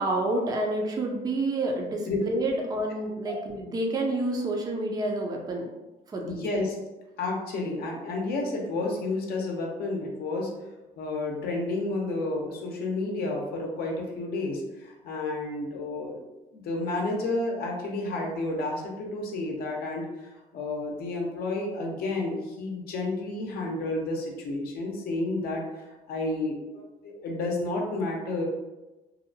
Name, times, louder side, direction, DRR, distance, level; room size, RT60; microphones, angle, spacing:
voice 1, 0.0-5.7 6.1-6.4, right 2 dB, 25° right, 1 dB, 0.4 m, -29 dB
voice 2, 6.2-6.7 7.2-10.5 11.0-16.2 16.5-28.5, left 2 dB, 65° left, 0 dB, 0.6 m, -31 dB
2.7 x 2.0 x 2.6 m, 1.1 s
cardioid pair, 110°, 17 cm